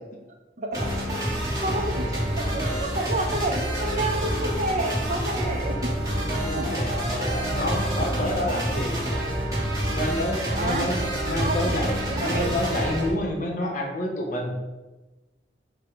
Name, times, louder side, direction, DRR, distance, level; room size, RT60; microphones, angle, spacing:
voice 1, 0.6-1.0 1.6-5.9 6.5-6.9 8.5-8.6 10.5-10.9 11.4-11.8 12.1-12.6, right 2 dB, 40° right, 3 dB, 0.5 m, -30 dB
sound 1, 0.7-13.1, equal, 20° right, 1.3 m, -27 dB
voice 2, 6.2-9.0 9.9-14.6, left 1 dB, 45° left, 1 dB, 0.7 m, -29 dB
4.8 x 2.1 x 4.5 m, 1.1 s
head